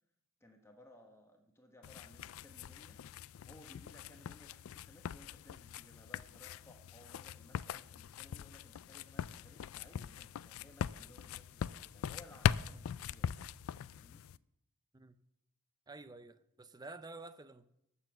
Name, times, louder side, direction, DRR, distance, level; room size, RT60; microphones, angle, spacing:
voice 1, 0.4-3.0 3.4-13.5 13.9-14.3, left 1 dB, 10° left, 1.1 m, -60 dB
sound 1, 1.8-14.4, left 8 dB, 70° left, 0.3 m, -41 dB
voice 2, 15.9-17.7, right 3 dB, 15° right, 0.4 m, -50 dB
12.0 x 7.1 x 7.4 m
head